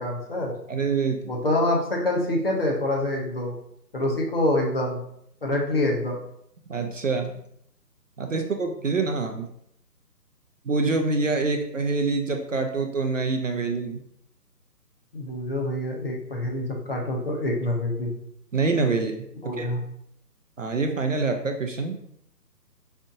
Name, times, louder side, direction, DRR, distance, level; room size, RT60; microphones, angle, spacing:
voice 1, 0.0-0.5 1.3-3.5 3.9-5.0 5.4-6.2 15.1-18.1 19.4-19.8, left 1 dB, 35° left, -1 dB, 0.7 m, -26 dB
voice 2, 0.7-1.3 6.7-7.3 8.2-9.5 10.7-14.0 18.5-19.2 19.6-19.7 20.6-22.0, right 3 dB, 50° right, 4 dB, 0.5 m, -25 dB
4.3 x 2.5 x 3.5 m, 0.71 s
figure-of-eight pair, 155°, 49 cm